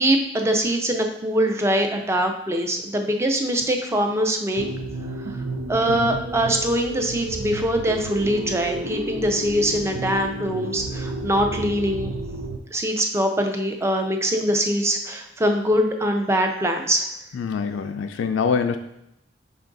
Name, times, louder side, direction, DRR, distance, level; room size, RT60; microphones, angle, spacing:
voice 1, 0.0-4.6 5.7-12.1 12.7-17.1, right 1 dB, 15° right, 4 dB, 0.4 m, -23 dB
sound 1, 4.6-12.6, right 2 dB, 85° right, 0.5 m, -31 dB
voice 2, 17.3-18.8, left 6 dB, 85° left, 7 dB, 0.3 m, -25 dB
5.2 x 2.5 x 3.8 m, 0.81 s
head